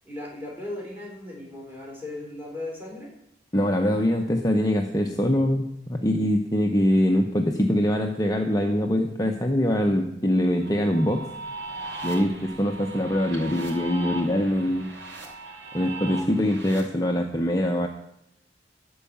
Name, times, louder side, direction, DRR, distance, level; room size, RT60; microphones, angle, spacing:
voice 1, 0.0-3.1, left 2 dB, 10° right, -3 dB, 3.7 m, -37 dB
voice 2, 3.5-11.2 12.0-14.9 15.7-17.9, left 1 dB, 20° left, 3 dB, 0.7 m, -23 dB
sound 1, 10.6-16.8, right 3 dB, 90° right, 2.7 m, -38 dB
12.5 x 4.7 x 8.6 m, 0.81 s
head